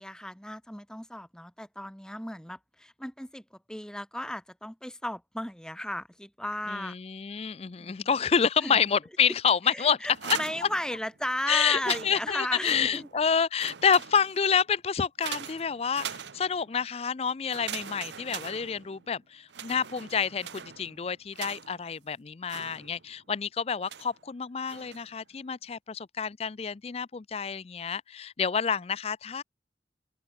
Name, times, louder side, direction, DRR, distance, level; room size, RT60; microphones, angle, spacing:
voice 1, 0.0-6.9 7.8-8.1 8.6-8.8 9.6-13.1, left 1 dB, 5° left, 3.2 m, -35 dB
voice 2, 6.7-10.0 10.2-10.4 11.5-29.4, left 6 dB, 35° left, 0.4 m, -28 dB
sound 1, 10.0-11.3 11.7-13.3 13.6-14.5 15.2-16.8 17.5-19.1 19.5-21.9 22.5-23.2 23.9-24.2 24.7-25.2, right 8 dB, 85° right, 1.0 m, -41 dB
open air
head